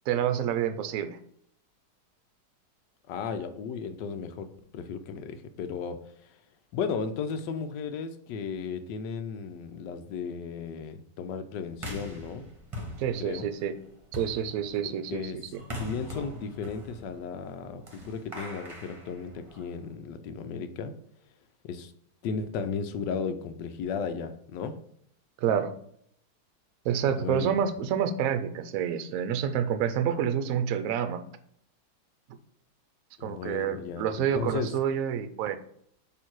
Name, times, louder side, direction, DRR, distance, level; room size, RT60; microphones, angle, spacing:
voice 1, 0.1-1.2 13.0-13.7 14.1-15.3 25.4-25.7 26.8-31.2 33.2-35.6, right 8 dB, 65° right, 10 dB, 0.9 m, -28 dB
voice 2, 3.1-6.4 6.7-12.5 13.2-13.5 14.8-15.4 15.8-21.0 21.6-21.9 22.2-24.8 27.1-27.6 33.2-34.7, left 5 dB, 80° left, 8 dB, 1.3 m, -35 dB
sound 1, 11.7-19.9, left 1 dB, 20° right, 1.2 m, -42 dB
6.6 x 3.1 x 4.6 m, 0.67 s
omnidirectional pair, 1.9 m